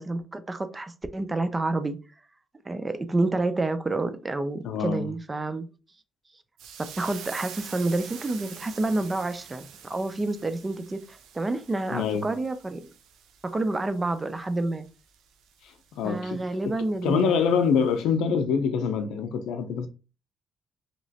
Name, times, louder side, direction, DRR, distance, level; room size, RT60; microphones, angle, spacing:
voice 1, 0.0-2.0 2.7-5.7 6.8-12.9 13.4-14.9 16.0-17.5, right 2 dB, 25° right, 0.4 m, -29 dB
voice 2, 4.6-5.1 11.9-12.3 15.6-16.4 17.0-19.9, left 6 dB, 90° left, 0.5 m, -25 dB
sound 1, 6.6-17.5 17.9-18.0, right 8 dB, 85° right, 0.5 m, -46 dB
2.9 x 2.9 x 2.7 m
cardioid pair, 90°, 0 cm